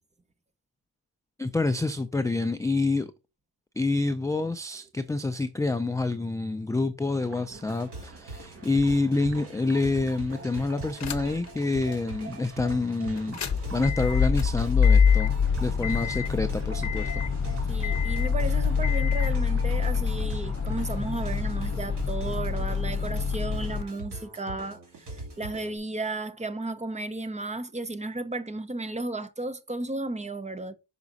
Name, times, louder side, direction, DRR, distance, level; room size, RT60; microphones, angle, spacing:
voice 1, 1.4-3.1 3.8-13.4 13.7-15.3 15.6-17.2, left 3 dB, 10° left, 0.3 m, -27 dB
sound 1, 7.2-22.8, right 3 dB, 35° right, 1.1 m, -47 dB
sound 2, 7.6-25.8, right 2 dB, 70° right, 2.5 m, -42 dB
sound 3, 11.0-11.5 11.9-12.0 13.2-23.8, left 6 dB, 40° left, 0.8 m, -25 dB
voice 2, 17.7-24.8 25.1-30.7, right 2 dB, 15° right, 0.7 m, -34 dB
6.0 x 4.9 x 4.0 m
wide cardioid pair, 150°, 42 cm